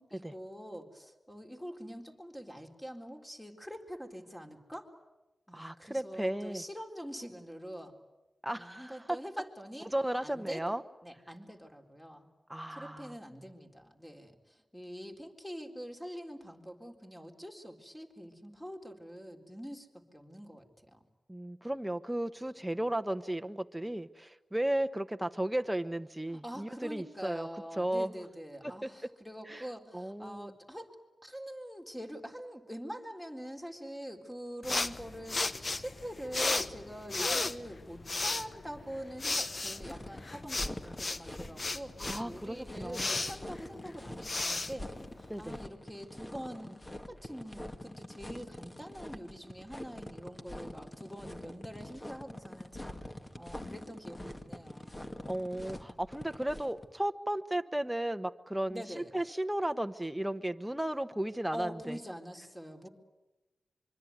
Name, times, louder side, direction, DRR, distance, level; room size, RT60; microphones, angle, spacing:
voice 1, 0.0-4.9 5.5-8.0 8.5-9.9 10.2-10.7 11.0-12.3 12.7-21.0 26.3-30.9 31.2-53.0 53.4-55.1 58.7-59.1 61.5-62.9, equal, 10° left, 3 dB, 3.8 m, -45 dB
voice 2, 5.5-6.6 8.4-9.2 9.9-10.8 12.5-13.1 21.3-27.5 27.8-28.1 28.8-28.9 29.5-29.7 29.9-30.5 42.0-43.2 45.3-45.6 55.3-62.0, right 1 dB, 10° right, 8 dB, 1.2 m, -34 dB
sound 1, 34.6-45.6, left 3 dB, 45° left, 1.1 m, -35 dB
sound 2, 39.8-56.9, left 1 dB, 25° left, 2.1 m, -45 dB
25.0 x 24.0 x 9.6 m, 1.0 s
cardioid pair, 70°, 0 cm